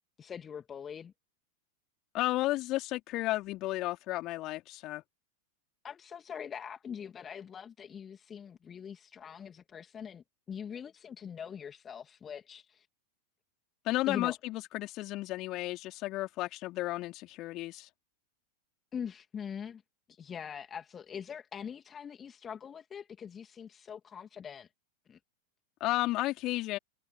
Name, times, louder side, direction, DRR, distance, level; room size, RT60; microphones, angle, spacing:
voice 1, 0.2-1.1 5.8-12.9 14.1-14.3 18.9-19.8 20.1-24.7 25.1-25.2, left 7 dB, 20° left, 2.8 m, -43 dB
voice 2, 2.1-5.0 13.9-17.9 25.8-26.8, left 18 dB, 40° left, 3.7 m, -33 dB
figure-of-eight pair, 90°, 0 cm